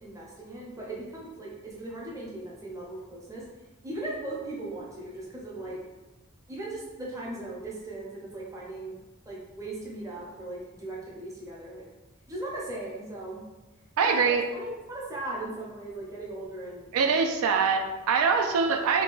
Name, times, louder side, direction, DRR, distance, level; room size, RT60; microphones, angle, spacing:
voice 1, 0.0-3.5 3.8-5.8 6.5-9.0 9.3-11.9 12.3-13.4 14.0-17.1, right 2 dB, 15° right, -4 dB, 0.6 m, -38 dB
voice 2, 14.0-14.4 16.9-19.0, right 5 dB, 85° right, 5 dB, 0.3 m, -24 dB
2.7 x 2.3 x 3.8 m, 1.1 s
head